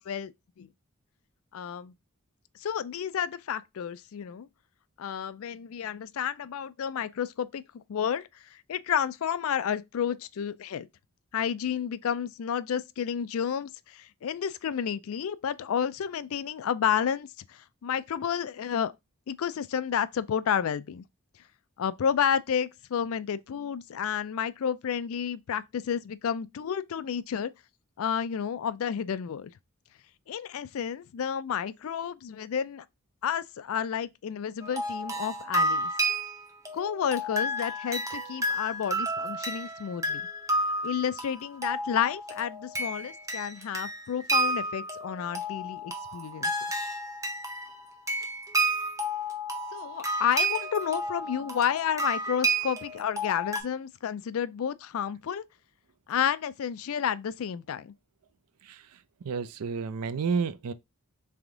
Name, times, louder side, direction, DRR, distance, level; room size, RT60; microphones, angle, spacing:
voice 1, 1.5-1.9 2.6-4.5 5.0-10.9 11.3-18.9 19.3-21.0 21.8-27.5 28.0-29.5 30.3-32.9 33.2-35.9 36.7-40.2 40.8-46.5 49.7-55.4 56.1-57.9, left 8 dB, 65° left, 0.3 m, -31 dB
sound 1, 34.6-53.6, right 1 dB, 15° right, 0.7 m, -31 dB
voice 2, 58.6-59.0 59.2-60.7, right 5 dB, 80° right, 0.4 m, -31 dB
3.4 x 3.4 x 3.7 m
head